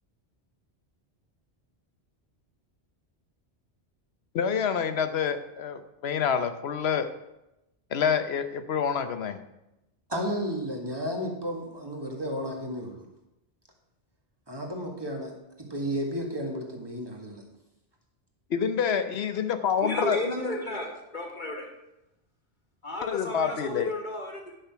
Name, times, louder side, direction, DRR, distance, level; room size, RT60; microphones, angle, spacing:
voice 1, 4.3-7.1 7.9-9.4 18.5-20.2 23.1-23.9, left 7 dB, 70° left, 10 dB, 1.0 m, -27 dB
voice 2, 10.1-13.1 14.5-15.3 15.6-17.4, equal, 20° right, 1 dB, 1.7 m, -33 dB
voice 3, 19.8-21.7 22.8-24.5, left 2 dB, 45° left, 0 dB, 1.9 m, -33 dB
10.0 x 6.2 x 5.8 m, 0.91 s
omnidirectional pair, 1.1 m